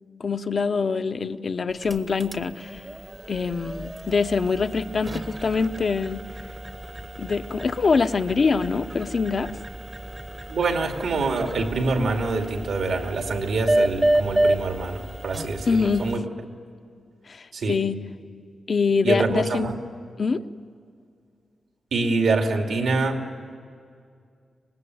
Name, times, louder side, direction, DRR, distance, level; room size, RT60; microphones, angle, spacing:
voice 1, 0.2-2.8 3.3-6.2 7.2-9.5 15.7-16.0 17.3-18.0 18.7-19.7 20.2-20.4, left 4 dB, 45° left, 10 dB, 0.9 m, -24 dB
sound 1, 1.7-16.2, right 1 dB, 20° right, 1.0 m, -30 dB
voice 2, 10.5-16.2 17.5-17.8 19.0-19.7 21.9-23.2, right 3 dB, 75° right, 3 dB, 2.6 m, -25 dB
25.5 x 20.0 x 9.5 m, 2.3 s
wide cardioid pair, 120°, 0 cm